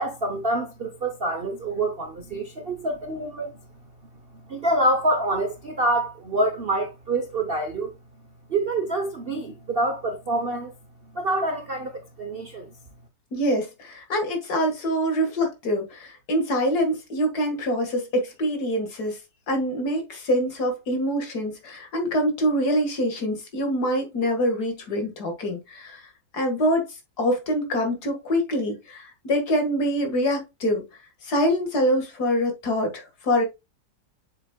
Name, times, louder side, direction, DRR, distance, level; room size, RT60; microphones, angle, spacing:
voice 1, 0.0-3.5 4.3-8.0 8.5-10.7 11.1-12.7, right 1 dB, 45° right, 0.8 m, -26 dB
voice 2, 13.3-19.2 19.5-26.0 26.3-26.9 27.2-30.8 31.2-33.4, equal, 55° left, 2.2 m, -25 dB
7.2 x 6.6 x 2.2 m
omnidirectional pair, 2.0 m